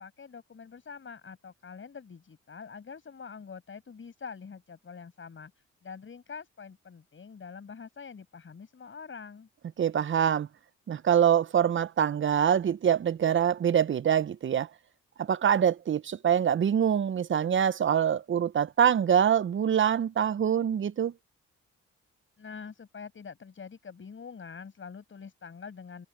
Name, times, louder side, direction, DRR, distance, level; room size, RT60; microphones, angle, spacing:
voice 1, 0.0-5.5 5.8-9.5 22.4-26.1, left 5 dB, 45° left, 6.1 m, -45 dB
voice 2, 9.8-10.5 10.9-14.7 15.2-21.1, right 8 dB, 40° right, 0.7 m, -24 dB
supercardioid pair, 70°, 29 cm